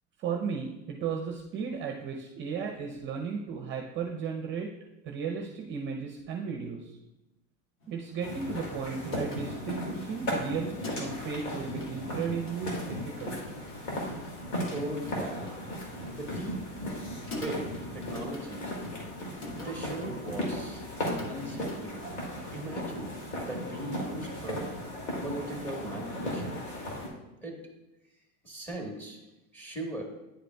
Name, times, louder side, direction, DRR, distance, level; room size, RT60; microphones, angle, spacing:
voice 1, 0.2-4.7 5.0-7.0 7.9-13.4, right 6 dB, 30° right, 1 dB, 0.6 m, -35 dB
sound 1, 7.8-21.9, left 2 dB, 35° left, 1.1 m, -47 dB
sound 2, 8.2-27.1, left 1 dB, 90° left, 2.4 m, -36 dB
voice 2, 14.7-15.5 16.1-16.6 17.3-18.7 19.5-20.8 21.3-22.0 22.5-23.1 23.4-24.6 25.2-26.6 27.4-27.6 28.4-29.2 29.5-30.0, right 1 dB, 5° left, 1 dB, 1.3 m, -38 dB
10.0 x 5.0 x 2.2 m, 0.96 s
supercardioid pair, 140°, 38 cm